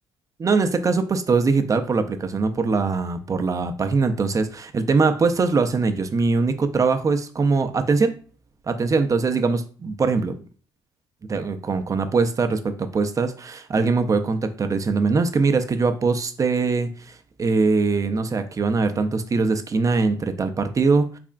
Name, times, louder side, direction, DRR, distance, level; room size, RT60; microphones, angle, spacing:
voice 1, 0.4-8.2 8.7-10.4 11.3-21.2, right 4 dB, 30° right, 8 dB, 0.5 m, -22 dB
3.6 x 3.3 x 2.4 m, 0.41 s
supercardioid pair, 65°, 11 cm